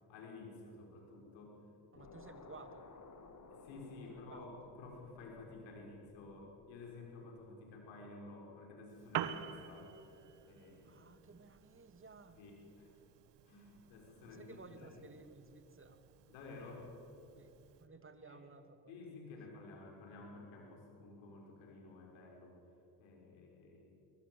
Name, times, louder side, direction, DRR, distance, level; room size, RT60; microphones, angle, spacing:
voice 1, 0.1-1.6 1.9-2.1 3.5-9.9 10.4-11.1 12.4-12.9 13.4-15.0 16.3-16.9 18.3-18.4 18.9-22.6 23.0-23.9, left 3 dB, 80° left, 0 dB, 6.1 m, -53 dB
sound 1, 1.9-7.2, left 4 dB, 40° left, 2.5 m, -58 dB
voice 2, 1.9-2.9 4.3-4.4 10.8-12.4 14.3-16.0 17.4-18.9, right 4 dB, 25° right, 9 dB, 2.4 m, -56 dB
Piano, 8.9-17.9, right 10 dB, 60° right, 1.5 m, -48 dB
23.0 x 19.0 x 8.0 m, 2.9 s
hypercardioid pair, 60°, 46 cm